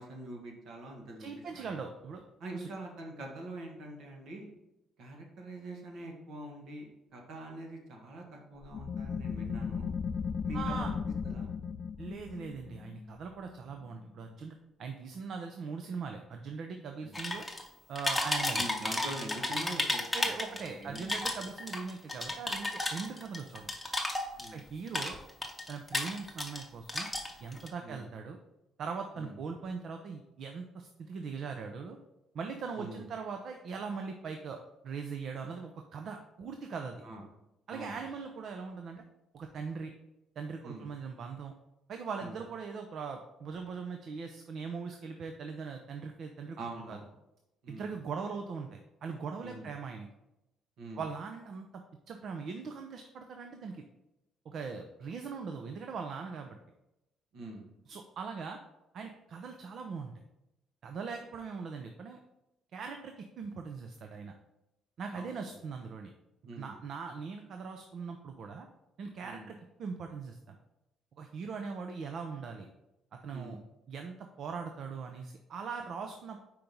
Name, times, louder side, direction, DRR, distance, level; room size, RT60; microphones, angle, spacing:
voice 1, 0.0-1.3 1.5-1.8 2.4-4.5 5.0-9.9 10.4-11.0 11.2-11.5 17.0-17.2 18.6-21.1 21.4-21.5 24.4-24.6 27.8-28.0 29.1-29.4 32.8-33.0 37.0-37.2 37.7-38.1 40.6-40.9 42.2-42.4 46.6-47.0 47.6-47.9 49.4-49.7 50.8-51.0 57.3-57.7 65.1-65.6 66.4-66.8 69.2-69.5 73.3-73.6, right 2 dB, 70° right, 1 dB, 1.6 m, -44 dB
voice 2, 1.2-2.2 2.5-2.7 10.5-10.9 12.0-17.5 17.9-18.6 20.1-23.7 24.5-25.2 25.7-27.1 27.4-28.4 28.8-32.0 32.3-37.0 37.7-39.0 39.3-39.9 40.4-41.5 41.9-46.6 46.9-47.0 47.7-50.1 51.0-53.8 54.5-56.6 57.9-58.6 58.9-60.1 60.8-62.2 62.7-64.3 65.0-66.1 66.6-68.7 69.0-70.6 71.2-72.7 73.2-73.6 73.9-76.4, right 5 dB, 55° right, 5 dB, 0.6 m, -40 dB
sound 1, 8.6-14.0, left 6 dB, 35° left, 0.4 m, -36 dB
sound 2, 17.1-17.7 18.0-20.7 21.0-24.6 24.9-26.6 26.9-27.7, left 1 dB, 5° left, 0.9 m, -33 dB
5.0 x 4.5 x 5.4 m, 0.92 s
cardioid pair, 130°, 0 cm